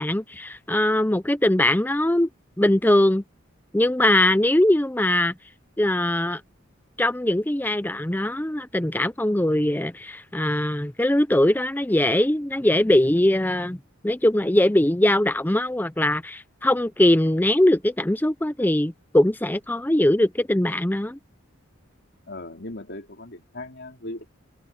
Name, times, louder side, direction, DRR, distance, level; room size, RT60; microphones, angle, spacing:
voice 1, 0.0-2.3 2.6-3.2 3.7-5.3 5.8-6.4 7.0-13.8 14.0-21.2, left 1 dB, 10° left, 0.5 m, -21 dB
voice 2, 22.3-24.2, left 1 dB, 55° left, 4.1 m, -38 dB
head